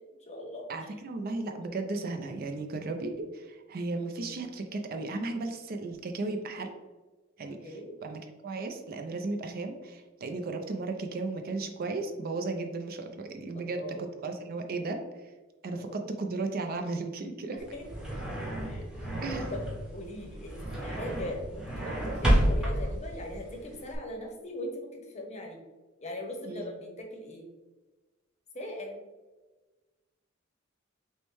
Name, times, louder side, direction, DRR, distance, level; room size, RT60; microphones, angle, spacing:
voice 1, 0.0-0.7 1.6-1.7 7.6-8.0 13.5-14.1 15.7-16.0 17.7-17.8 18.7-19.2 19.5-19.6 19.9-25.6 26.0-27.5 28.5-29.0, left 1 dB, 35° left, 2 dB, 0.7 m, -40 dB
voice 2, 0.7-6.7 7.4-15.3 15.6-17.7 19.2-19.5 26.5-26.7, right 3 dB, 45° right, 5 dB, 0.4 m, -35 dB
sound 1, 17.6-24.0, equal, 5° right, 0.8 m, -30 dB
6.3 x 2.1 x 3.1 m, 1.2 s
head